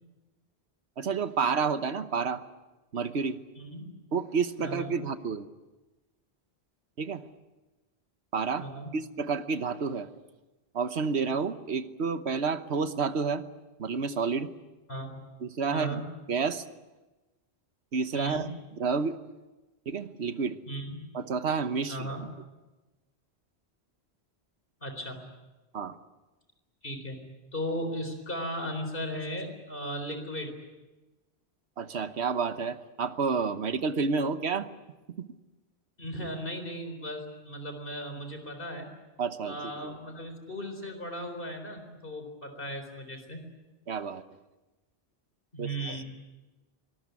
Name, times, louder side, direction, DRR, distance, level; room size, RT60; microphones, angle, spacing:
voice 1, 1.0-2.4 2.9-3.4 4.1-5.5 7.0-7.2 8.3-8.7 8.9-10.1 10.7-13.4 13.8-14.5 15.4-16.0 16.3-16.6 17.9-18.5 18.8-19.2 19.9-20.6 21.1-22.3 25.7-25.9 31.8-34.7 35.2-35.3 39.2-39.9 43.9-44.2 45.6-46.0, right 5 dB, 80° right, 11 dB, 1.4 m, -30 dB
voice 2, 3.6-3.9 4.6-4.9 8.6-8.9 14.9-15.2 15.7-16.1 18.1-18.4 20.7-21.0 21.9-22.2 24.8-25.2 26.8-27.2 27.5-30.5 36.0-38.9 39.4-43.4 45.5-46.0, equal, 55° left, 6 dB, 4.3 m, -36 dB
24.5 x 19.5 x 9.6 m, 1.1 s
omnidirectional pair, 1.1 m